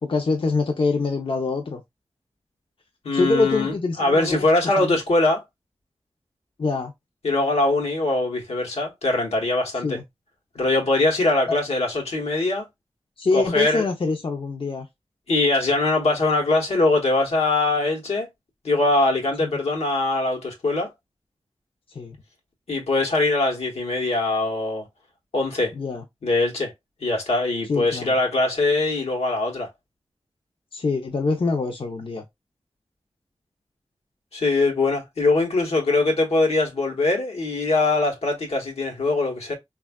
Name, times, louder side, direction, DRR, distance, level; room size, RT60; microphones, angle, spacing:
voice 1, 0.0-1.8 3.1-4.5 4.8-5.0 6.6-6.9 9.8-10.0 11.5-11.6 13.2-14.9 19.4-19.5 21.9-22.1 25.7-26.0 27.7-28.2 30.7-32.2, left 3 dB, 55° left, 0.6 m, -24 dB
voice 2, 3.0-5.4 7.2-10.0 10.5-12.7 13.3-13.8 15.3-18.3 18.6-20.9 22.7-24.8 25.3-25.7 26.2-26.7 27.0-29.7 34.3-39.5, left 2 dB, 90° left, 1.0 m, -22 dB
3.3 x 2.3 x 2.2 m
cardioid pair, 45°, 10 cm